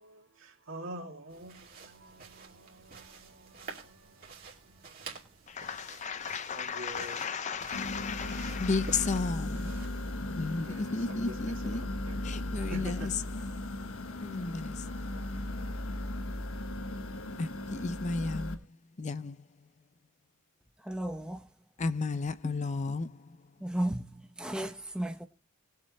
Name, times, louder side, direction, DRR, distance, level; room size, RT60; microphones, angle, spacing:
voice 1, 0.0-5.3 6.0-6.2 6.5-7.2 8.2-8.7 10.6-12.2 12.6-13.1 13.4-13.5, right 1 dB, 70° right, 2.6 m, -47 dB
sound 1, 1.3-10.1, right 4 dB, 45° right, 2.5 m, -50 dB
voice 2, 5.5-9.7 10.2-11.8 12.2-13.1 14.2-14.8 17.4-18.6 19.0-19.4 21.8-23.1, left 4 dB, 35° left, 0.5 m, -33 dB
sound 2, 7.7-18.5, left 1 dB, 85° left, 1.3 m, -37 dB
voice 3, 20.8-21.4 22.4-22.7 23.6-25.3, right 1 dB, 5° right, 0.9 m, -35 dB
20.0 x 7.5 x 3.1 m
head